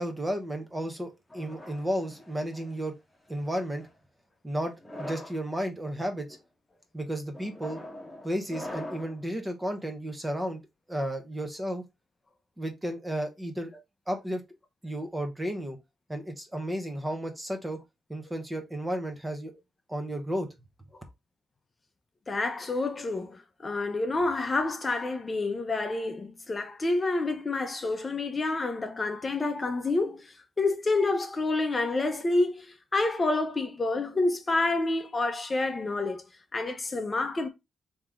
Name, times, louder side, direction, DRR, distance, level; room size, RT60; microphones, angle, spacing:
voice 1, 0.0-2.9 3.3-3.9 4.4-4.7 5.0-6.3 6.9-7.8 8.2-10.6 10.9-11.8 12.6-13.7 14.1-14.4 14.8-15.8 16.1-17.8 18.1-19.5 19.9-20.5, equal, 15° right, 0.9 m, -33 dB
sound 1, 1.3-2.7 3.5-3.9 4.7-5.4 6.1-6.4 7.3-9.2, left 1 dB, 10° left, 1.2 m, -42 dB
voice 2, 22.3-36.2 36.5-37.5, left 2 dB, 30° left, 0.7 m, -28 dB
3.6 x 2.9 x 3.6 m
cardioid pair, 95°, 0 cm